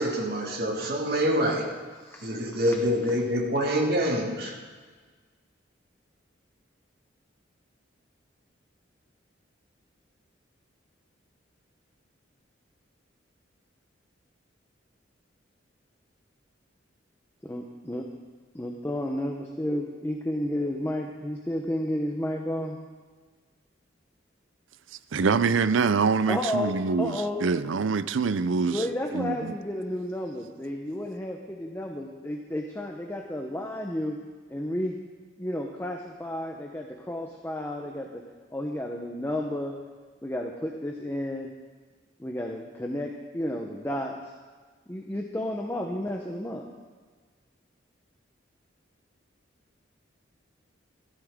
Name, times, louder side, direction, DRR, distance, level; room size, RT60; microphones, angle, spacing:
voice 1, 0.0-1.7 2.2-4.6, equal, 55° right, 0 dB, 2.0 m, -26 dB
voice 2, 2.0-2.3 17.4-18.1 18.5-22.8 26.3-27.4 28.6-34.2 34.5-35.0 35.4-38.2 38.5-39.8 40.2-41.5 42.2-44.3 44.9-46.7, left 1 dB, 10° left, 1 dB, 0.8 m, -32 dB
voice 3, 25.1-28.9 29.1-29.5, right 5 dB, 85° right, 14 dB, 0.5 m, -25 dB
14.5 x 13.5 x 3.7 m, 1.5 s
head